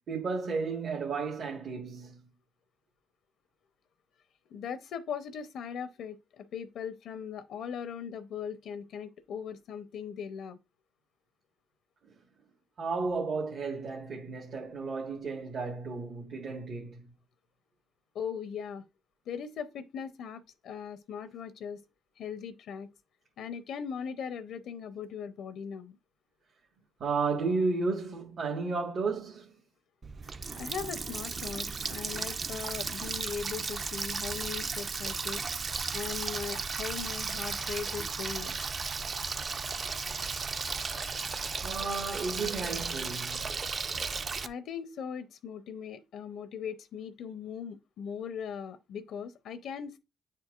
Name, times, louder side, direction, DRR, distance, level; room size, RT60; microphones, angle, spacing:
voice 1, 0.1-2.2 12.8-17.1 27.0-29.5 41.6-43.6, right 4 dB, 60° right, 1.4 m, -33 dB
voice 2, 4.5-10.6 18.1-18.8 19.3-21.8 22.2-22.9 23.4-26.0 30.5-35.4 35.9-38.6 44.4-50.0, left 7 dB, 75° left, 0.6 m, -39 dB
Water tap faucet, 30.0-44.5, right 4 dB, 40° right, 0.5 m, -35 dB
9.3 x 4.5 x 2.4 m
cardioid pair, 90°, 0 cm